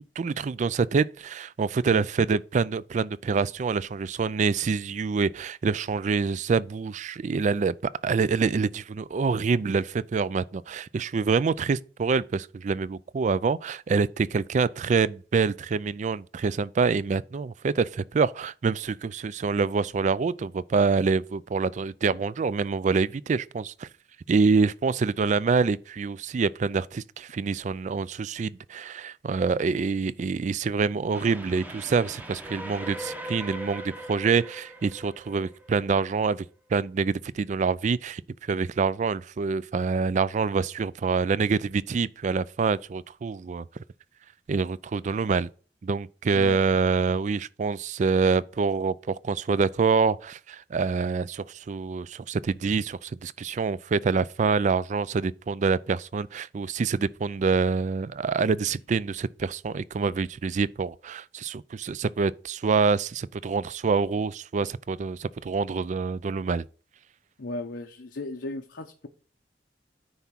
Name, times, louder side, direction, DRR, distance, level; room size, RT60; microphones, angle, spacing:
voice 1, 0.2-7.7 8.0-23.9 24.3-36.5 36.7-43.7 44.5-45.5 45.8-66.7, right 5 dB, 40° right, 0.3 m, -26 dB
Train, 31.1-36.4, equal, 10° right, 0.8 m, -40 dB
voice 2, 46.3-46.6 67.4-69.1, left 2 dB, 80° left, 0.8 m, -36 dB
9.6 x 3.6 x 5.8 m
head